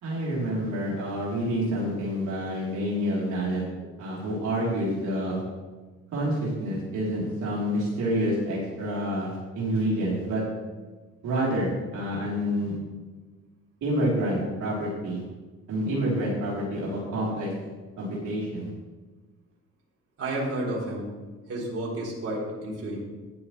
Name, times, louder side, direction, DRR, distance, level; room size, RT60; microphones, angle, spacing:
voice 1, 0.0-3.6 4.0-5.4 6.1-10.4 11.2-12.8 13.8-15.2 15.7-17.5 18.0-18.7, equal, 75° right, -6 dB, 3.7 m, -28 dB
voice 2, 20.2-21.1 21.5-23.0, right 1 dB, 50° right, -4 dB, 3.9 m, -31 dB
13.5 x 10.5 x 3.3 m, 1.3 s
cardioid pair, 90°, 30 cm